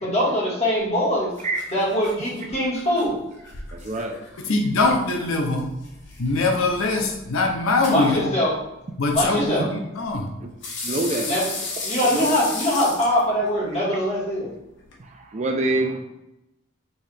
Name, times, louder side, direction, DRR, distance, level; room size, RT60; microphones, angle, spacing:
voice 1, 0.0-1.3 1.7-3.2 7.9-8.5 9.1-9.7 11.2-11.4 11.8-14.5, equal, 30° left, -6 dB, 1.7 m, -22 dB
sound 1, 0.8-15.0, left 3 dB, 55° left, 1.0 m, -37 dB
voice 2, 3.7-4.2 10.4-10.5 10.8-11.3 12.0-12.3 15.0-16.0, right 2 dB, 35° right, 3 dB, 0.4 m, -26 dB
voice 3, 4.5-5.7 6.2-8.3 9.0-10.3, left 3 dB, 75° left, 3 dB, 0.6 m, -22 dB
5.5 x 2.7 x 3.3 m, 0.90 s
head